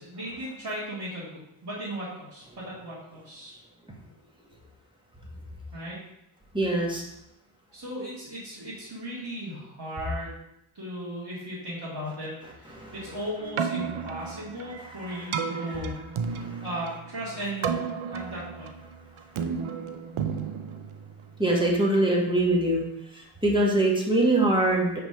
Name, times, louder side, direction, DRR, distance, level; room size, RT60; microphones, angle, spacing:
voice 1, 0.0-3.6 5.7-6.0 7.7-10.3 10.7-16.0 16.6-18.7, equal, 55° right, -10 dB, 2.1 m, -36 dB
voice 2, 6.5-7.0 12.8-12.9 14.7-14.9 15.7-15.8 21.4-22.8 23.4-25.0, right 1 dB, 10° right, -3 dB, 1.6 m, -23 dB
Keyboard (musical), 13.4-21.6, right 6 dB, 90° right, 0.6 m, -33 dB
5.7 x 3.7 x 5.7 m, 0.83 s
wide cardioid pair, 80°, 48 cm